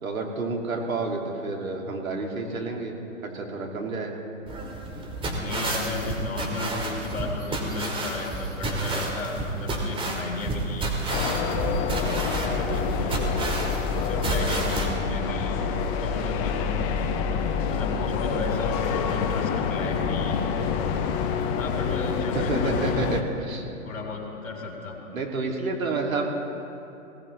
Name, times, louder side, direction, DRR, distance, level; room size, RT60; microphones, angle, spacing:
voice 1, 0.0-2.9 3.2-4.2 22.3-23.6 25.1-26.2, right 3 dB, 80° right, 1 dB, 2.7 m, -29 dB
sound 1, 4.5-14.9, right 2 dB, 15° right, 2.1 m, -30 dB
voice 2, 5.3-11.4 12.4-13.2 14.0-15.6 16.0-17.0 17.7-20.4 21.5-23.1 23.8-25.0, left 3 dB, 70° left, 0 dB, 3.7 m, -34 dB
sound 2, 11.1-23.2, left 6 dB, 30° left, 0.9 m, -27 dB
19.5 x 17.5 x 3.3 m, 2.9 s
hypercardioid pair, 120°, 41 cm